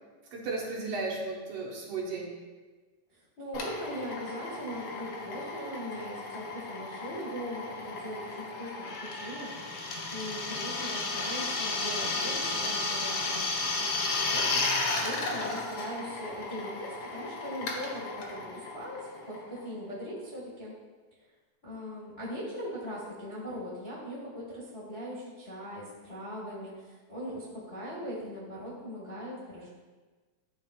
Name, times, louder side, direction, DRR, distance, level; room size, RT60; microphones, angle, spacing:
voice 1, 0.3-2.3, right 3 dB, 65° right, -3 dB, 1.9 m, -34 dB
voice 2, 3.4-20.8 21.6-29.7, equal, 35° left, -7 dB, 1.0 m, -40 dB
Drill, 3.5-19.9, left 3 dB, 65° left, 1.5 m, -34 dB
12.0 x 4.2 x 2.4 m, 1.3 s
omnidirectional pair, 3.3 m